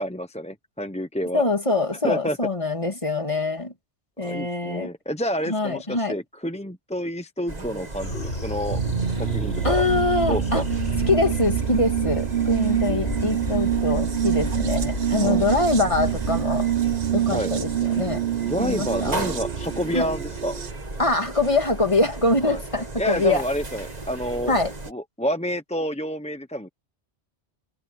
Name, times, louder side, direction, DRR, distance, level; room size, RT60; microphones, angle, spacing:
voice 1, 0.0-1.4 2.0-2.4 4.2-8.1 8.4-8.8 9.2-9.8 10.3-10.6 15.2-15.4 17.3-17.5 18.4-20.6 22.4-22.6 23.0-24.5 24.9-26.7, equal, 5° left, 0.8 m, -28 dB
voice 2, 1.3-3.7 4.2-4.9 5.5-6.2 9.6-10.7 11.1-16.7 17.1-18.2 18.6-19.2 19.9-20.1 21.0-23.4 24.5-24.7, left 2 dB, 25° left, 2.7 m, -24 dB
sound 1, 7.5-24.9, right 2 dB, 35° right, 2.1 m, -36 dB
sound 2, 8.0-18.7, left 1 dB, 65° left, 4.0 m, -32 dB
sound 3, 8.7-20.7, right 10 dB, 50° right, 1.1 m, -26 dB
omnidirectional pair, 1.2 m